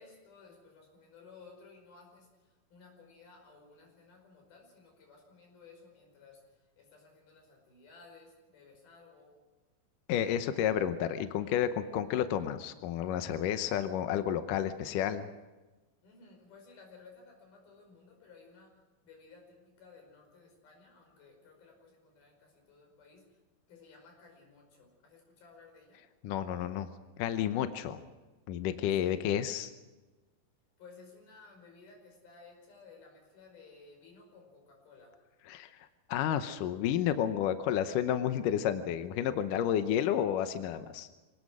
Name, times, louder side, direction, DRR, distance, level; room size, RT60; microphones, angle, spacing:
voice 1, 0.0-9.4 16.0-23.4 23.7-26.0 29.0-29.1 30.8-35.2, left 4 dB, 90° left, 3 dB, 7.0 m, -57 dB
voice 2, 10.1-15.3 26.2-26.9 27.2-28.0 28.5-29.7 35.5-41.1, left 10 dB, 75° left, 10 dB, 2.3 m, -31 dB
25.5 x 19.0 x 6.3 m, 1.2 s
omnidirectional pair, 4.2 m